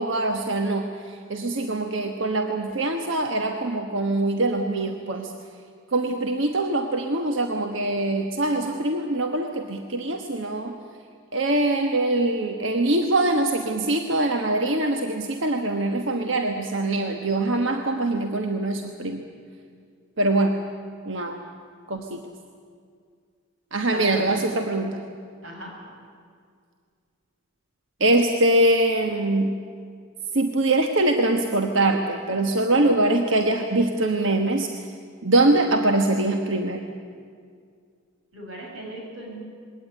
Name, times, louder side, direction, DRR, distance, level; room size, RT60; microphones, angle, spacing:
voice 1, 0.0-5.3 5.9-10.8 11.3-19.2 20.2-20.6 21.1-21.4 21.9-22.2 23.7-25.0 28.0-29.5 30.3-34.7 35.2-36.9, right 2 dB, 65° right, 4 dB, 1.3 m, -23 dB
voice 2, 23.9-24.2 25.4-25.7 38.3-39.4, right 1 dB, 80° right, -1 dB, 7.4 m, -37 dB
21.5 x 17.5 x 9.8 m, 2.1 s
head